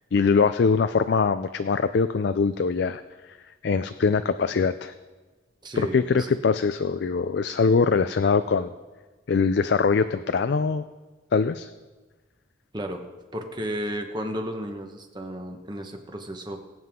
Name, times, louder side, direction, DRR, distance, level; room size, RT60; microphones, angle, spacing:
voice 1, 0.1-3.0 3.6-4.9 5.8-8.7 9.3-10.8 11.3-11.7, left 5 dB, 65° left, 11 dB, 0.4 m, -22 dB
voice 2, 5.6-6.3 12.7-13.1 13.3-16.6, equal, 25° right, 4 dB, 1.2 m, -33 dB
23.0 x 7.8 x 3.7 m, 1.3 s
head